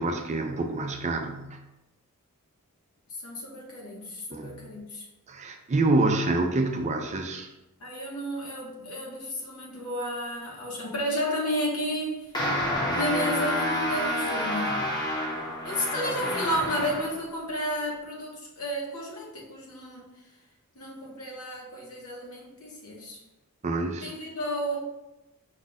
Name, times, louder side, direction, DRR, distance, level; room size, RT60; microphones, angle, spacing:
voice 1, 0.0-1.6 4.3-4.6 5.3-7.5 23.6-24.1, right 2 dB, 30° right, 4 dB, 0.4 m, -27 dB
voice 2, 3.1-5.1 7.8-12.3 12.9-14.8 15.6-20.1 20.7-23.2 24.0-24.8, equal, 75° left, -3 dB, 1.4 m, -32 dB
sound 1, 12.3-17.2, equal, 20° left, 0.8 m, -29 dB
5.2 x 2.4 x 4.0 m, 0.98 s
head